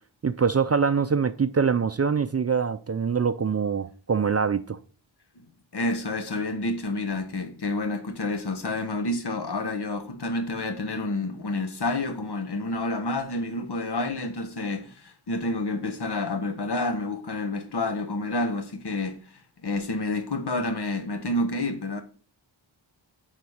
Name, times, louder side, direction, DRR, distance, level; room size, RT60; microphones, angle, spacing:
voice 1, 0.2-4.8, right 6 dB, 35° right, 0.5 m, -24 dB
voice 2, 5.7-19.2 19.6-22.0, left 2 dB, 55° left, 1.3 m, -29 dB
9.2 x 4.1 x 5.0 m
cardioid pair, 50°, 47 cm